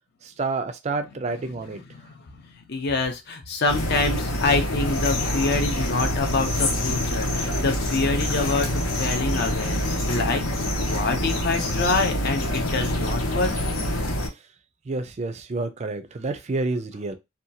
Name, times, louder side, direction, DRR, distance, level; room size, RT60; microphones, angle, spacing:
voice 1, 0.2-1.8 14.9-17.1, right 3 dB, 30° right, 0.4 m, -29 dB
voice 2, 1.8-10.4 10.8-13.5, left 3 dB, 50° left, 0.5 m, -26 dB
sound 1, 3.7-14.3, left 1 dB, 80° left, 0.8 m, -26 dB
2.8 x 2.2 x 2.6 m
head